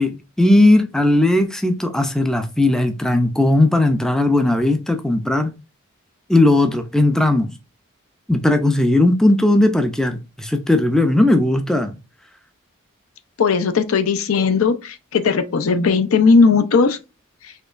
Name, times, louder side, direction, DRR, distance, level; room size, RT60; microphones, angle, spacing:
voice 1, 0.0-5.5 6.3-7.5 8.3-11.9, left 1 dB, 5° left, 0.3 m, -17 dB
voice 2, 13.4-17.0, left 4 dB, 75° left, 0.5 m, -17 dB
4.3 x 2.9 x 2.4 m
head